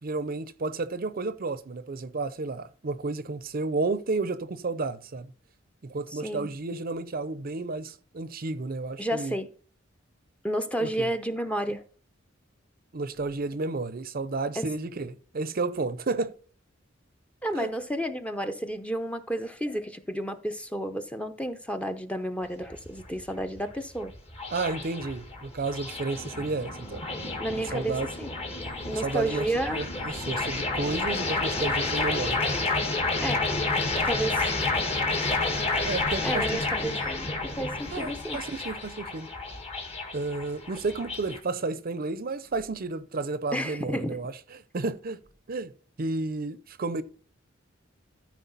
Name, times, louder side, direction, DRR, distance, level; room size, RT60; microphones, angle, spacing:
voice 1, 0.0-5.3 5.8-9.3 10.8-11.1 12.9-16.3 17.5-17.7 24.5-27.0 27.7-28.1 28.9-32.4 35.9-36.9 37.9-39.3 40.1-45.2 45.5-45.7 46.0-47.0, right 3 dB, 50° right, 0.6 m, -32 dB
voice 2, 6.1-6.5 9.0-9.5 10.4-11.8 14.6-14.7 17.4-24.1 27.4-28.3 28.8-29.8 33.2-33.4 34.0-34.5 36.2-38.4 43.5-44.2, right 1 dB, 5° left, 0.7 m, -31 dB
sound 1, 22.4-41.4, left 3 dB, 30° left, 1.6 m, -30 dB
sound 2, 28.6-38.0, equal, 50° left, 3.7 m, -47 dB
13.5 x 4.9 x 4.0 m
head